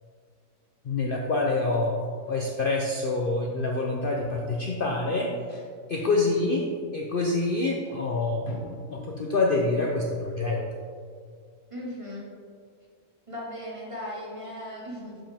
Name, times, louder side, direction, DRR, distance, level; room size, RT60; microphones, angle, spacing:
voice 1, 0.8-2.0 2.3-5.6 5.9-10.6, left 2 dB, 55° left, -1 dB, 0.7 m, -26 dB
voice 2, 11.7-12.3 13.3-15.2, left 1 dB, 25° right, -4 dB, 1.2 m, -37 dB
7.4 x 5.6 x 3.4 m, 2.1 s
omnidirectional pair, 1.4 m